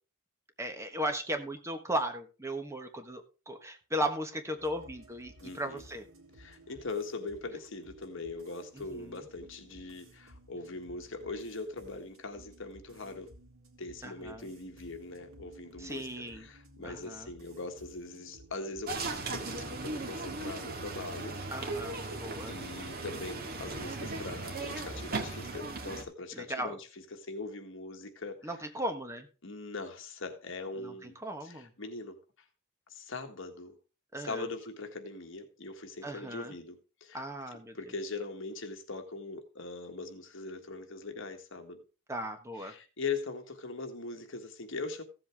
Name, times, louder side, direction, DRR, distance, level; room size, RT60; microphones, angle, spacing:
voice 1, 0.6-6.0 8.9-9.2 14.0-14.5 15.8-16.4 16.8-17.3 21.5-22.5 26.3-26.7 28.4-29.3 30.8-31.7 34.1-34.5 36.0-36.5 37.1-37.8 42.1-42.7, right 1 dB, 15° right, 1.3 m, -36 dB
sound 1, 4.6-22.1, right 1 dB, 85° right, 2.4 m, -56 dB
voice 2, 5.4-5.8 6.4-13.3 13.8-21.4 22.0-28.5 29.4-31.1 31.4-32.2 32.9-33.8 34.2-37.2 37.7-41.8 42.6-45.0, left 3 dB, 65° left, 1.7 m, -41 dB
sound 2, 18.9-26.0, right 3 dB, 45° right, 1.9 m, -37 dB
15.5 x 7.8 x 3.5 m
head